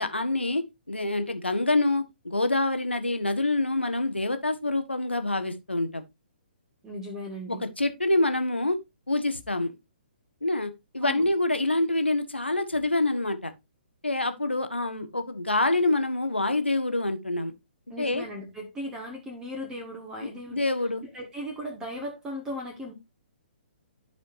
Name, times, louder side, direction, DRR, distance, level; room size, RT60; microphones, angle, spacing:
voice 1, 0.0-6.0 7.5-8.8 9.1-9.7 10.4-13.5 14.0-17.5 18.0-18.2 20.2-21.0, left 2 dB, 80° left, 1.2 m, -26 dB
voice 2, 6.8-7.6 11.0-11.3 17.9-20.6 21.0-22.9, equal, 10° right, 1.6 m, -37 dB
13.0 x 5.0 x 2.6 m
figure-of-eight pair, 130°, 6 cm